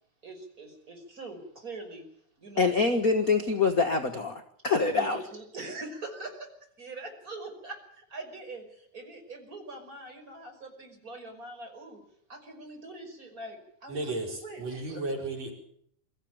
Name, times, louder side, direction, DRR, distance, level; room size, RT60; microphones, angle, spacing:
voice 1, 0.2-2.1 2.4-2.7 4.9-6.5 6.8-12.0 12.3-14.0 14.4-14.6 14.9-15.0, right 2 dB, 25° right, 3 dB, 6.1 m, -43 dB
voice 2, 2.6-5.2, left 4 dB, 45° left, 6 dB, 1.2 m, -25 dB
voice 3, 13.9-15.5, right 2 dB, 55° right, 1 dB, 6.0 m, -34 dB
24.0 x 14.5 x 8.9 m, 0.67 s
omnidirectional pair, 3.5 m